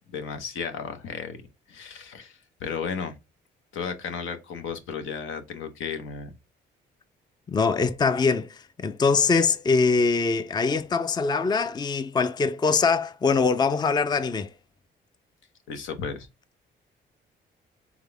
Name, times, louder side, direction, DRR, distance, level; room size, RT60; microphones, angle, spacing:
voice 1, 0.1-1.4 1.7-3.1 3.7-6.3 15.7-16.3, left 6 dB, 85° left, 0.9 m, -34 dB
voice 2, 7.5-14.5, left 4 dB, 20° left, 0.4 m, -23 dB
3.7 x 3.6 x 3.4 m
cardioid pair, 90°, 20 cm